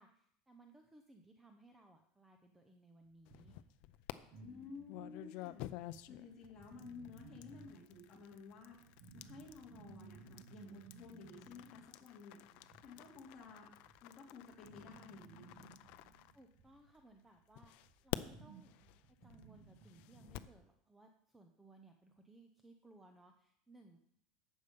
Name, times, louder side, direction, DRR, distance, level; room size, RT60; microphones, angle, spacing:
voice 1, 0.0-3.6 16.3-18.7 19.2-24.0, right 2 dB, 5° right, 4 dB, 0.7 m, -63 dB
sound 1, 3.1-5.6 5.9-20.4, right 5 dB, 45° right, 2.3 m, -60 dB
sound 2, 3.3-4.1 4.9-16.9 17.6-20.6, left 16 dB, 50° left, 0.5 m, -50 dB
voice 2, 4.4-5.6 6.0-8.8 9.1-12.4 12.8-13.7 14.0-15.8, left 4 dB, 20° left, -3 dB, 3.0 m, -54 dB
12.0 x 8.0 x 5.3 m, 0.70 s
cardioid pair, 175°, 3 cm